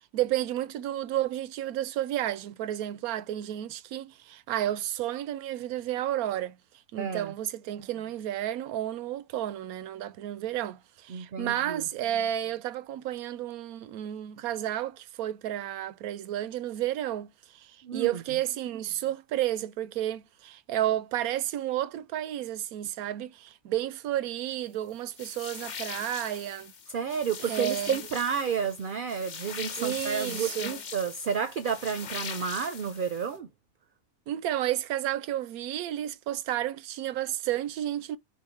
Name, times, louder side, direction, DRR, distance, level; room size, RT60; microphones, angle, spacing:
voice 1, 0.1-6.6 6.9-26.7 27.5-28.0 29.8-30.8 34.3-38.2, right 12 dB, 90° right, 1.1 m, -31 dB
voice 2, 7.0-7.3 11.1-11.9 17.8-18.2 26.9-33.5, right 7 dB, 60° right, 0.5 m, -31 dB
sound 1, 25.2-33.3, left 6 dB, 45° left, 0.6 m, -40 dB
5.5 x 2.2 x 4.3 m
omnidirectional pair, 1.5 m